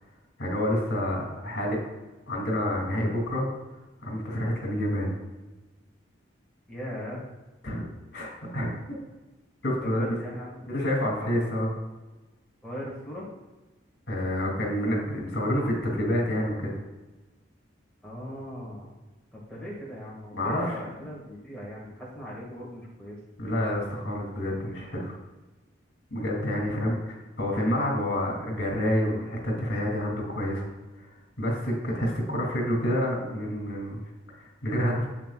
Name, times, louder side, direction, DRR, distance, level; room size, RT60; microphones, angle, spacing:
voice 1, 0.4-1.8 2.3-3.5 4.0-5.1 7.6-7.8 8.1-8.7 9.6-10.2 10.7-11.7 14.1-16.7 20.4-20.7 23.4-25.1 26.1-26.9 27.4-30.7 31.4-34.0 34.4-35.1, equal, 60° left, -1 dB, 2.9 m, -28 dB
voice 2, 6.7-7.2 9.8-10.7 11.2-11.5 12.6-13.3 18.0-18.9 19.3-23.2 26.6-27.0, equal, 5° left, -6 dB, 2.1 m, -39 dB
12.0 x 8.3 x 2.5 m, 1.2 s
head